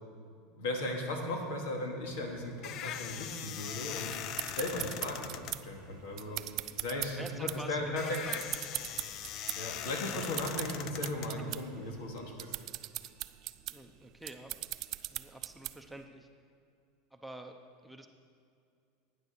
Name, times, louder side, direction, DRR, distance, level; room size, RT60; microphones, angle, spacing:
voice 1, 0.5-4.1 4.5-5.3 5.6-6.4 6.8-8.0 9.6-12.5, left 1 dB, 85° left, 1 dB, 2.4 m, -37 dB
sound 1, 2.0-12.0, left 10 dB, 45° left, 0.5 m, -42 dB
sound 2, 4.1-16.0, right 15 dB, 45° right, 0.4 m, -41 dB
voice 2, 6.3-6.6 7.1-8.4 9.9-10.5 11.4-11.5 11.9-12.0 13.7-16.3 17.1-17.5 17.8-18.1, right 1 dB, 5° right, 4 dB, 0.7 m, -48 dB
12.0 x 9.5 x 6.7 m, 2.4 s
supercardioid pair, 140°, 0 cm